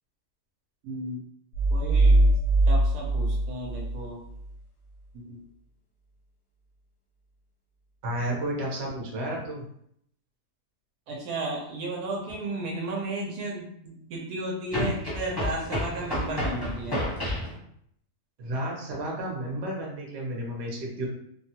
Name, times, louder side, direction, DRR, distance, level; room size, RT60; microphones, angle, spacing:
voice 1, 0.8-1.2 1.7-2.3 2.7-4.2 5.1-5.4 11.1-17.0, right 2 dB, 75° right, -2 dB, 1.1 m, -34 dB
sound 1, 1.5-4.5, right 2 dB, 90° left, 0.6 m, -22 dB
voice 2, 8.0-9.6 14.7-14.9 18.4-21.1, right 1 dB, 50° right, -3 dB, 0.9 m, -32 dB
sound 2, 12.3-12.4 14.7-17.5, left 1 dB, 20° left, 0.8 m, -31 dB
2.9 x 2.2 x 2.7 m, 0.71 s
omnidirectional pair, 1.7 m